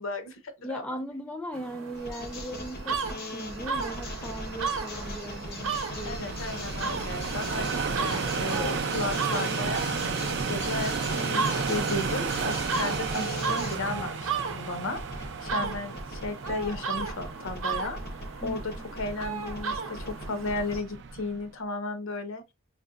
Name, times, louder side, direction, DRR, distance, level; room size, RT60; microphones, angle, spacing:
voice 1, 0.0-1.0 6.0-18.0 18.4-22.4, left 2 dB, 75° left, 0.8 m, -34 dB
voice 2, 0.6-6.3 15.6-15.7 18.4-18.6, equal, 5° left, 0.4 m, -38 dB
sound 1, 1.5-20.8, right 5 dB, 80° right, 0.8 m, -35 dB
sound 2, 1.9-13.7 14.9-20.8, left 2 dB, 45° left, 1.0 m, -39 dB
sound 3, 3.1-21.4, right 5 dB, 55° right, 0.4 m, -34 dB
5.1 x 3.0 x 2.4 m
head